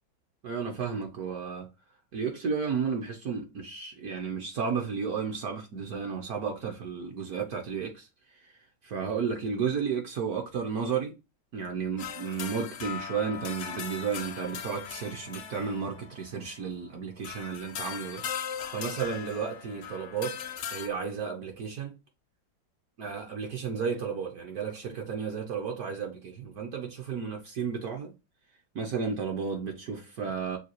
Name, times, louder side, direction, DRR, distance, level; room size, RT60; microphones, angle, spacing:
voice 1, 0.4-1.7 2.1-8.1 8.8-11.2 11.5-18.2 18.7-20.4 20.7-22.0 23.0-28.1 28.7-30.6, right 6 dB, 65° right, 1.1 m, -33 dB
sound 1, 12.0-16.5 17.2-20.9, left 8 dB, 70° left, 0.6 m, -39 dB
6.4 x 2.3 x 2.9 m
omnidirectional pair, 2.0 m